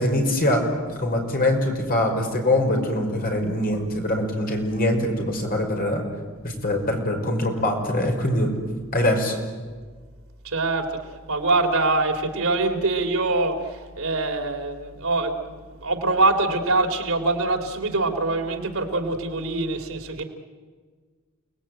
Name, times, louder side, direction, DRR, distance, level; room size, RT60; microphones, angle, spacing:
voice 1, 0.0-6.0 6.4-8.5 8.9-9.4, left 1 dB, 45° left, 3 dB, 5.4 m, -23 dB
voice 2, 10.4-10.9 11.3-20.2, right 2 dB, 70° right, 3 dB, 3.3 m, -24 dB
30.0 x 20.0 x 9.2 m, 1.5 s
head